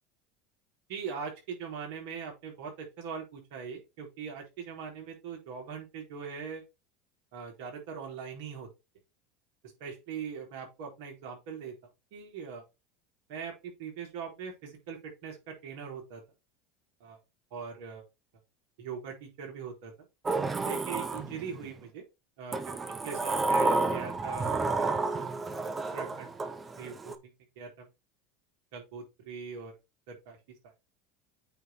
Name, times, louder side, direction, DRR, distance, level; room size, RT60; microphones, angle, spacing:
voice 1, 0.9-6.6 7.3-8.7 9.8-11.7 12.1-12.6 13.3-16.2 17.0-17.2 17.5-18.0 18.8-19.9 20.6-22.0 22.4-25.0 25.9-26.3 26.8-27.9 28.7-29.8 30.1-30.4, right 6 dB, 70° right, 1 dB, 3.8 m, -41 dB
Sliding door, 20.3-21.7 22.5-27.2, right 3 dB, 25° right, 1.2 m, -31 dB
8.9 x 3.9 x 4.3 m, 0.25 s
hypercardioid pair, 90°, 0 cm